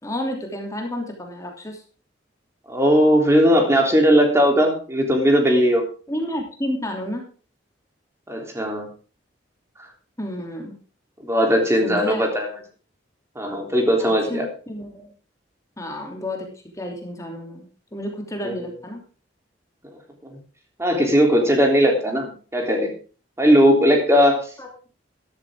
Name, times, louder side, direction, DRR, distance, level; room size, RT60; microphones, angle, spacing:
voice 1, 0.0-1.8 6.1-7.3 10.2-10.7 11.8-12.2 14.0-15.1 15.8-16.5 16.7-19.0 24.6-24.7, left 1 dB, 15° left, 2 dB, 2.9 m, -31 dB
voice 2, 2.7-5.8 8.3-8.9 11.2-12.5 13.3-14.4 18.4-18.7 20.8-22.9 23.4-24.4, equal, 15° right, 2 dB, 3.4 m, -18 dB
13.0 x 12.5 x 3.7 m, 0.38 s
head